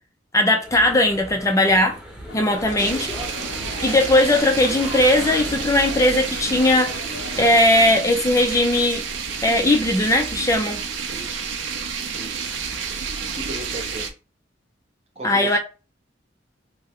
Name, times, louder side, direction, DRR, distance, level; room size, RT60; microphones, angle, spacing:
voice 1, 0.3-2.0 2.3-3.1 3.8-6.9 7.4-9.0 9.4-10.8 15.2-15.6, left 1 dB, 15° left, 0.4 m, -18 dB
sound 1, 0.6-5.7, equal, 5° right, 1.0 m, -38 dB
sound 2, 2.3-7.9, left 3 dB, 70° left, 0.6 m, -36 dB
sound 3, 2.8-14.1, right 5 dB, 80° right, 0.6 m, -30 dB
voice 2, 11.1-11.6 12.2-12.5 13.3-14.0 15.2-15.6, right 1 dB, 35° right, 0.8 m, -36 dB
3.3 x 2.2 x 3.5 m
head